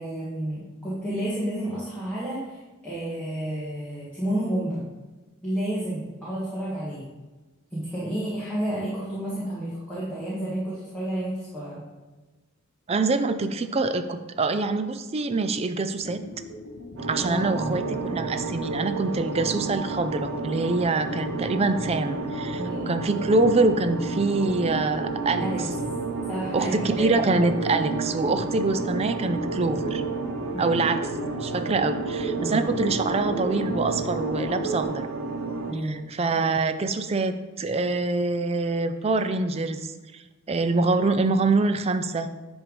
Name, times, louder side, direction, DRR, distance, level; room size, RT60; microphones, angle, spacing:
voice 1, 0.0-4.8 5.4-7.1 7.7-11.9 17.2-18.0 22.6-23.0 25.4-25.6 26.3-27.2 30.5-30.8 32.3-32.7 35.7-36.1, right 1 dB, 5° left, -10 dB, 1.8 m, -31 dB
voice 2, 12.9-16.2 17.1-17.8 18.1-25.5 26.5-30.0 30.6-31.1 31.4-35.1 35.8-39.8 40.1-40.2 40.5-42.3, right 3 dB, 30° right, 10 dB, 0.4 m, -25 dB
sound 1, 16.0-34.8, left 1 dB, 60° left, 1.0 m, -38 dB
sound 2, 17.0-35.7, right 3 dB, 70° right, 0.7 m, -31 dB
10.0 x 3.5 x 5.1 m, 1.2 s
head